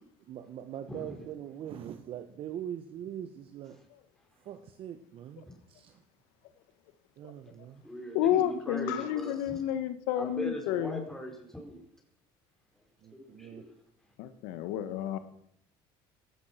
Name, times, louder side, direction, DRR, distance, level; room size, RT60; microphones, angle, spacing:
voice 1, 0.3-3.8 4.4-5.9 7.2-7.8 13.0-13.6, right 10 dB, 55° right, 8 dB, 1.3 m, -42 dB
voice 2, 0.9-1.2 7.8-9.6 10.1-11.8 13.1-13.7, equal, 5° left, 1 dB, 4.7 m, -40 dB
voice 3, 8.1-11.0 14.2-15.2, left 11 dB, 90° left, 11 dB, 1.7 m, -30 dB
17.5 x 13.5 x 6.0 m, 0.69 s
cardioid pair, 115°, 11 cm